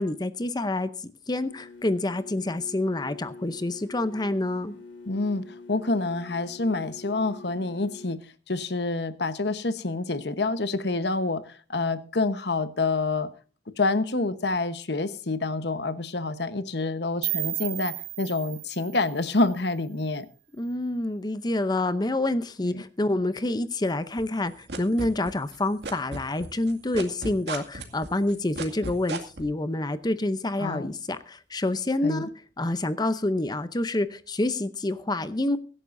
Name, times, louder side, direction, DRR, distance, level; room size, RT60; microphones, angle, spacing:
voice 1, 0.0-4.7 20.5-32.3 32.6-35.6, left 2 dB, 20° left, 0.7 m, -27 dB
sound 1, 1.4-8.2, left 3 dB, 85° left, 3.8 m, -45 dB
voice 2, 5.1-8.2 8.5-13.3 13.8-20.3 22.6-22.8 30.6-30.9 32.0-32.2, left 3 dB, 65° left, 1.1 m, -27 dB
sound 2, 17.2-20.2, right 16 dB, 90° right, 1.1 m, -34 dB
sound 3, 24.2-25.6 25.8-29.4, right 3 dB, 65° right, 2.2 m, -34 dB
24.0 x 11.0 x 2.6 m
head